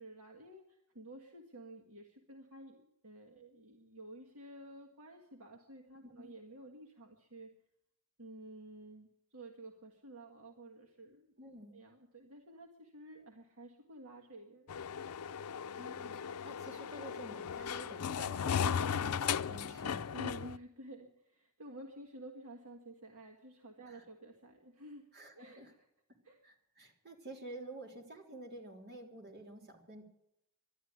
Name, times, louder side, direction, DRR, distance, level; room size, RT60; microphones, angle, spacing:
voice 1, 0.0-7.5 8.2-11.3 11.7-14.8 20.1-25.1 25.3-25.6 26.2-26.4, right 1 dB, 70° right, 1 dB, 1.8 m, -52 dB
voice 2, 6.0-6.3 11.4-11.7 15.8-16.2 16.4-20.1 23.8-24.0 25.1-25.7 26.4-30.0, right 1 dB, 45° right, 0 dB, 3.4 m, -50 dB
sound 1, 14.7-20.6, left 7 dB, 90° left, 0.5 m, -36 dB
12.0 x 11.5 x 9.6 m, 0.77 s
head